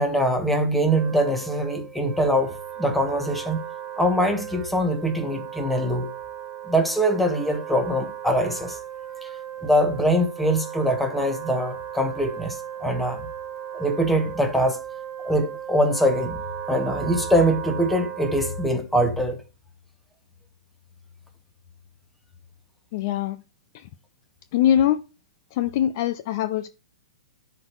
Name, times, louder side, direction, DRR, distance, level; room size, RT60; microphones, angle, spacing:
voice 1, 0.0-3.6 4.0-6.1 6.7-8.8 9.2-9.3 9.6-13.3 13.7-14.8 15.2-16.4 16.7-19.4, equal, 5° left, 1.4 m, -23 dB
Wind instrument woodwind instrument, 0.8-18.9, right 10 dB, 25° right, 1.0 m, -36 dB
voice 2, 22.9-23.4 23.7-23.9 24.5-25.0 25.5-26.7, left 11 dB, 40° left, 0.5 m, -22 dB
10.5 x 4.6 x 4.7 m
figure-of-eight pair, 115°, 3 cm